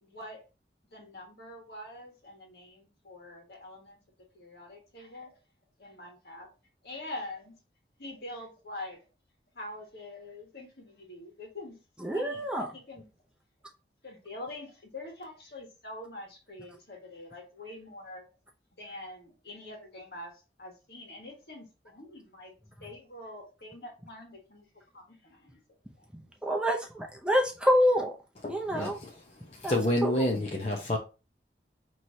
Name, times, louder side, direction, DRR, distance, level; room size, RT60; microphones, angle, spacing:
voice 1, 0.0-0.4 0.8-4.0 4.3-5.4 5.8-6.5 6.8-7.5 8.0-9.1 9.5-11.7 12.0-13.1 14.0-18.3 18.7-22.5 22.8-24.6 24.9-25.6 26.0-26.3, left 1 dB, 65° left, 1.7 m, -45 dB
voice 2, 12.0-12.7 26.4-28.2 28.5-29.0 29.6-30.2, equal, 5° right, 0.6 m, -27 dB
voice 3, 28.4-31.0, left 1 dB, 35° left, 0.7 m, -29 dB
5.8 x 3.1 x 2.7 m
head